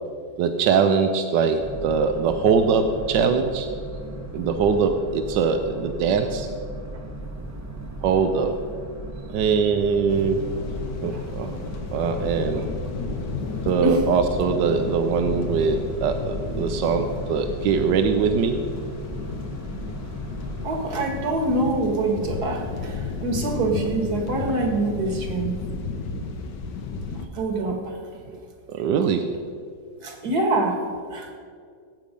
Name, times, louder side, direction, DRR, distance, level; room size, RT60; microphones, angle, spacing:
voice 1, 0.4-3.7 4.3-6.5 8.0-8.6 9.3-10.4 11.0-11.6 11.9-12.7 13.6-18.6 28.7-29.3, right 5 dB, 85° right, 7 dB, 1.4 m, -22 dB
Boat Water vehicle, 1.6-21.0, right 1 dB, 15° right, 0.8 m, -36 dB
sound 1, 10.1-27.3, left 5 dB, 80° left, 1.7 m, -33 dB
voice 2, 20.6-25.6 27.3-28.0 30.0-30.8 31.1-31.3, right 2 dB, 65° right, 2 dB, 2.3 m, -25 dB
18.5 x 8.5 x 5.2 m, 2.1 s
omnidirectional pair, 1.8 m